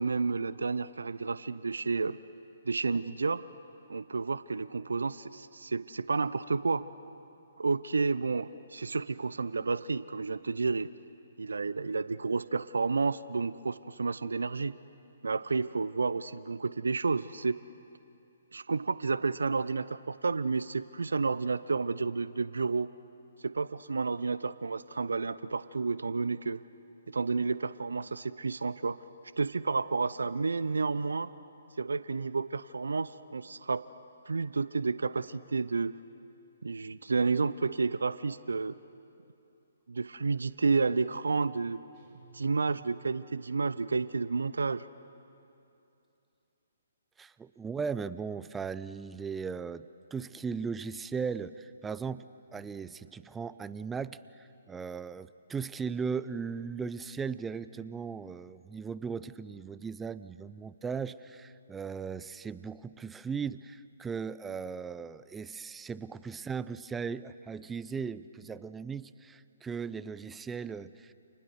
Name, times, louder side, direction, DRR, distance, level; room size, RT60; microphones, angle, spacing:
voice 1, 0.0-2.2 2.6-3.4 3.9-6.9 7.6-10.9 11.4-14.7 15.2-17.6 18.5-22.9 23.4-26.6 27.1-29.0 29.4-31.3 31.8-33.8 34.3-36.0 36.6-38.8 39.9-41.8 42.3-44.8, right 4 dB, 70° right, 16 dB, 0.7 m, -31 dB
sound 1, 41.9-44.5, right 4 dB, 35° right, 4.7 m, -58 dB
voice 2, 47.2-52.3 52.5-71.1, right 5 dB, 10° right, 16 dB, 0.6 m, -37 dB
30.0 x 29.0 x 6.6 m, 2.7 s
figure-of-eight pair, 130°, 0 cm